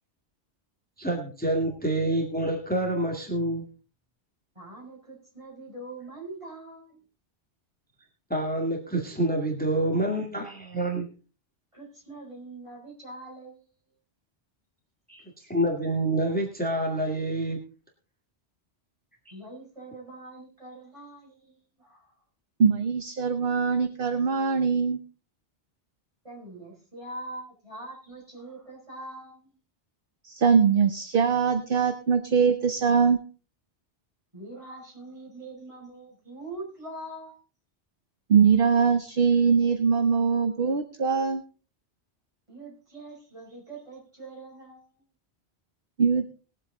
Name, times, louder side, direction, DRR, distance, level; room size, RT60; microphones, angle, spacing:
voice 1, 1.0-3.7 8.3-11.1 15.1-15.2 15.5-17.6, right 1 dB, 10° left, 1 dB, 2.1 m, -27 dB
voice 2, 4.5-7.0 11.7-13.6 19.3-22.1 26.2-29.6 34.3-37.4 42.5-44.9, right 2 dB, 25° right, -3 dB, 6.2 m, -43 dB
voice 3, 22.6-25.0 30.2-33.2 38.3-41.4 46.0-46.2, right 6 dB, 55° right, 8 dB, 1.1 m, -22 dB
20.5 x 7.7 x 3.9 m, 0.37 s
omnidirectional pair, 1.1 m